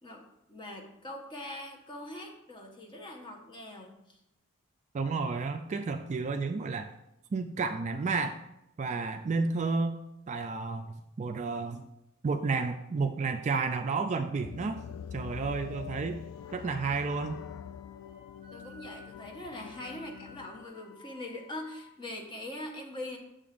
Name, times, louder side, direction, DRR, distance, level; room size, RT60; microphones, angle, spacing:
voice 1, 0.0-4.2 18.5-23.2, left 1 dB, 20° left, 1 dB, 1.0 m, -42 dB
voice 2, 4.9-6.9 7.3-8.4 8.8-10.0 10.3-11.9 12.2-14.8 15.1-16.2 16.5-17.4, right 4 dB, 30° right, 6 dB, 0.3 m, -31 dB
sound 1, 14.4-20.6, left 8 dB, 80° left, 0.3 m, -44 dB
Wind instrument woodwind instrument, 16.1-21.9, left 2 dB, 40° left, 1.9 m, -56 dB
8.8 x 6.8 x 2.5 m, 0.84 s
head